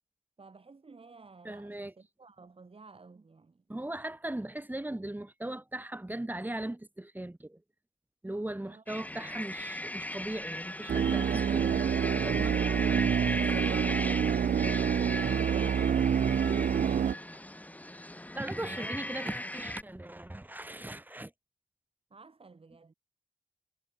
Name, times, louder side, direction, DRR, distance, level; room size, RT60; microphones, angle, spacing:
voice 1, 0.4-3.6 8.6-8.8 18.6-19.0 22.1-22.9, right 4 dB, 40° right, 7.3 m, -54 dB
voice 2, 1.4-1.9 3.7-7.6 8.2-11.7 12.2-12.6 18.3-21.3, right 1 dB, 10° right, 3.7 m, -38 dB
sound 1, 8.9-19.8, left 1 dB, 10° left, 3.9 m, -38 dB
sound 2, 10.9-17.1, right 8 dB, 65° right, 0.9 m, -27 dB
cardioid pair, 60°, 14 cm